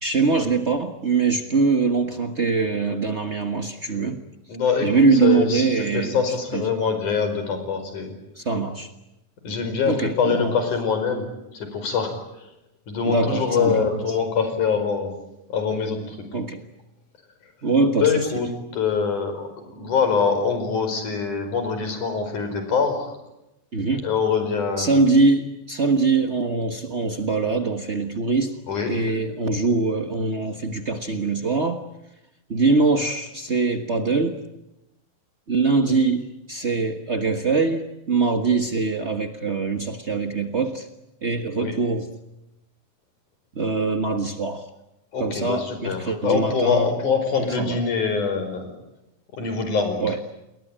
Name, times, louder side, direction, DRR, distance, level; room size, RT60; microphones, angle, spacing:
voice 1, 0.0-4.2 4.8-6.2 6.5-6.6 8.4-8.9 9.8-10.5 13.0-13.9 16.3-16.6 17.6-18.1 23.7-24.0 24.8-28.6 28.9-31.8 32.5-34.4 35.5-40.9 41.2-42.1 43.5-44.7 45.2-46.9 47.4-47.8 50.0-50.2, right 3 dB, 85° right, 7 dB, 0.6 m, -23 dB
voice 2, 4.5-8.2 9.4-11.3 11.5-12.2 12.9-15.1 15.5-16.2 17.9-23.2 24.0-25.0 28.7-29.0 41.6-41.8 45.1-48.7 49.3-50.0, left 5 dB, 70° left, 7 dB, 6.4 m, -24 dB
29.5 x 21.5 x 9.0 m, 0.90 s
omnidirectional pair, 3.7 m